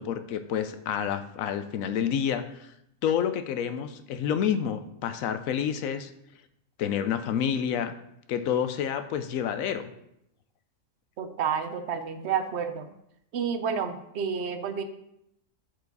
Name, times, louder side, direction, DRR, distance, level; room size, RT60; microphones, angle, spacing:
voice 1, 0.0-2.7 3.0-6.1 6.8-7.9 8.3-9.9, left 8 dB, 90° left, 10 dB, 1.0 m, -29 dB
voice 2, 11.2-12.9 13.3-14.8, right 7 dB, 60° right, 9 dB, 0.8 m, -30 dB
7.7 x 4.7 x 4.0 m, 0.79 s
omnidirectional pair, 1.4 m